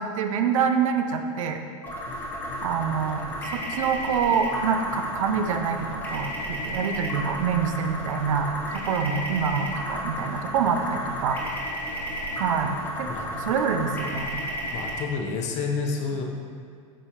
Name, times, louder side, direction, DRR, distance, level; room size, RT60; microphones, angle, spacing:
voice 1, 0.0-1.6 2.6-3.3 3.7-8.5 8.9-11.4 12.4-13.1 13.5-14.4, right 6 dB, 80° right, 6 dB, 0.6 m, -26 dB
sound 1, 1.8-15.0, equal, 10° left, 1.2 m, -33 dB
voice 2, 14.7-16.2, left 4 dB, 45° left, 2 dB, 0.8 m, -29 dB
6.8 x 5.0 x 2.9 m, 2.2 s
hypercardioid pair, 115°, 17 cm